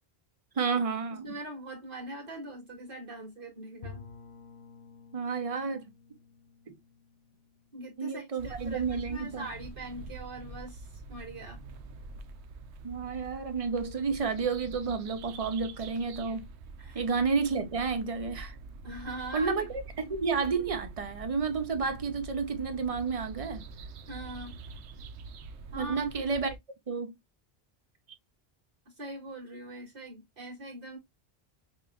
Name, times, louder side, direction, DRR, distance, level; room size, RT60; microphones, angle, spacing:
voice 1, 0.6-1.3 5.1-5.9 6.7-6.8 8.0-9.5 12.8-16.5 16.9-18.5 19.3-19.7 20.0-23.6 25.8-26.6 26.9-27.1, right 5 dB, 40° right, 0.6 m, -31 dB
voice 2, 1.1-4.0 7.7-11.6 16.8-17.0 18.8-19.6 24.1-24.6 25.7-26.1 28.9-31.0, right 1 dB, 55° right, 1.8 m, -42 dB
Bowed string instrument, 3.8-8.6, left 5 dB, 60° left, 0.8 m, -51 dB
sound 1, 8.4-26.6, right 3 dB, 85° right, 0.8 m, -45 dB
5.3 x 2.5 x 2.2 m
omnidirectional pair, 1.1 m